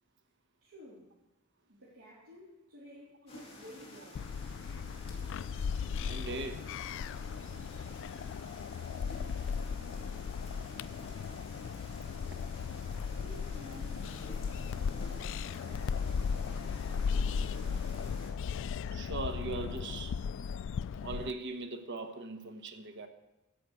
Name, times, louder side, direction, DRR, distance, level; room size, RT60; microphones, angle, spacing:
voice 1, 0.6-1.1 1.7-4.3 13.2-16.9, left 1 dB, 70° right, 3.3 m, -54 dB
sound 1, 3.3-18.3, left 1 dB, 30° left, 2.6 m, -50 dB
sound 2, 4.1-21.3, left 6 dB, 60° left, 0.3 m, -36 dB
voice 2, 6.1-6.7 13.7-13.8 18.9-20.2 21.0-23.1, right 3 dB, 55° right, 1.2 m, -40 dB
13.5 x 5.9 x 8.2 m
head